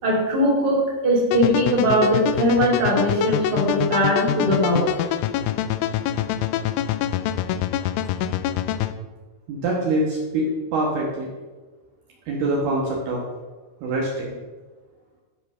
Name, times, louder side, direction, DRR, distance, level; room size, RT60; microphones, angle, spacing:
voice 1, 0.0-4.9, equal, 25° right, -3 dB, 2.5 m, -20 dB
sound 1, 1.3-8.9, left 11 dB, 85° left, 3.0 m, -25 dB
voice 2, 9.5-11.3 12.3-13.2 13.8-14.4, right 2 dB, 65° right, -3 dB, 2.9 m, -24 dB
13.0 x 5.1 x 6.0 m, 1.3 s
omnidirectional pair, 5.5 m